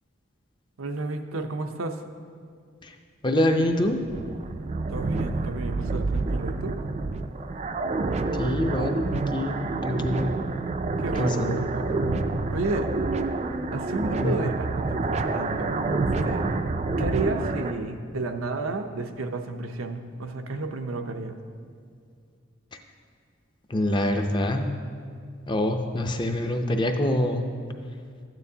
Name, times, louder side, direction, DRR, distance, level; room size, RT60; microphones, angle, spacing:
voice 1, 0.8-2.0 4.9-6.8 11.0-12.9 13.7-16.5 17.0-21.4, right 3 dB, 90° right, 6 dB, 0.6 m, -32 dB
voice 2, 3.2-4.0 8.3-10.3 11.1-11.6 14.2-14.4 23.7-24.7 25.5-27.5, left 1 dB, 25° left, 5 dB, 0.5 m, -25 dB
sound 1, 3.5-17.7, right 3 dB, 35° right, 0.3 m, -28 dB
12.5 x 9.1 x 2.8 m, 2.1 s
head